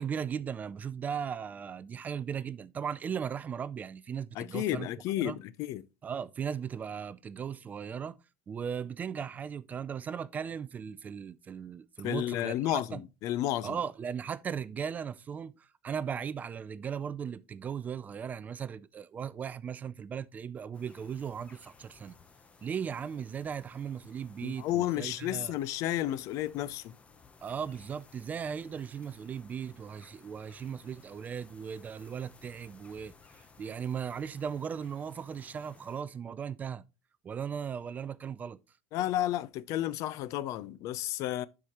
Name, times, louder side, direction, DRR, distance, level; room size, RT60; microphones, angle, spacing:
voice 1, 0.0-4.9 5.2-5.4 6.0-8.2 8.5-13.0 13.6-22.2 22.6-25.5 27.4-33.1 33.6-36.8 37.2-38.6, right 7 dB, 25° right, 0.4 m, -37 dB
voice 2, 4.4-5.9 12.0-13.8 24.4-26.9 38.9-41.5, left 13 dB, 50° left, 0.5 m, -32 dB
sound 1, 20.7-36.0, left 4 dB, 20° left, 0.8 m, -58 dB
11.5 x 4.8 x 2.9 m
supercardioid pair, 135°, 7 cm